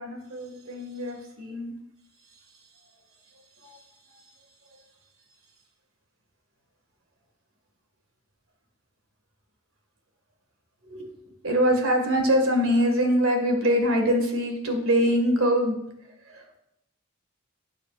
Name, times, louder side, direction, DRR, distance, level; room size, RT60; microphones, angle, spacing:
voice 1, 0.0-1.8 3.6-3.7 10.9-11.1 11.4-15.8 16.3-16.6, equal, 85° right, 3 dB, 2.0 m, -24 dB
12.5 x 8.7 x 2.5 m, 0.82 s
head